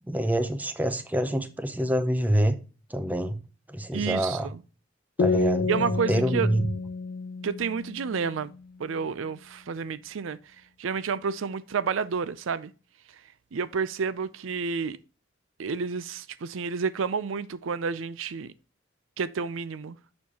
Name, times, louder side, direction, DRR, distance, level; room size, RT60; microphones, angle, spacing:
voice 1, 0.1-2.6 2.9-3.4 3.7-4.5 5.2-5.7 6.1-6.7, right 1 dB, 10° right, 0.7 m, -26 dB
voice 2, 3.9-4.4 5.7-6.5 7.4-8.5 8.8-10.4 10.8-12.7 13.5-15.0 15.6-18.5 19.2-20.0, right 5 dB, 75° right, 0.5 m, -30 dB
sound 1, 5.2-8.7, left 4 dB, 50° left, 0.4 m, -29 dB
7.0 x 6.5 x 2.9 m
head